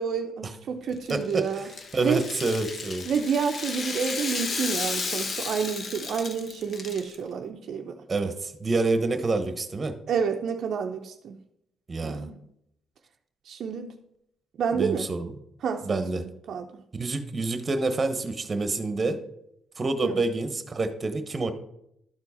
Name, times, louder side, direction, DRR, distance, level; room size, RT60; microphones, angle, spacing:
voice 1, 0.0-1.7 2.0-2.2 3.1-8.0 10.1-11.4 12.0-12.4 13.5-13.9 14.6-15.1 15.6-16.0 16.5-16.8 20.0-20.2, right 6 dB, 65° right, 0.6 m, -29 dB
Rattle (instrument), 0.9-7.1, left 4 dB, 50° left, 0.9 m, -33 dB
voice 2, 1.1-3.1 8.1-10.0 11.9-12.3 14.7-15.4 15.8-16.2 16.9-19.2 19.8-21.5, right 3 dB, 30° right, 1.0 m, -28 dB
12.0 x 4.5 x 4.2 m
cardioid pair, 90°, 0 cm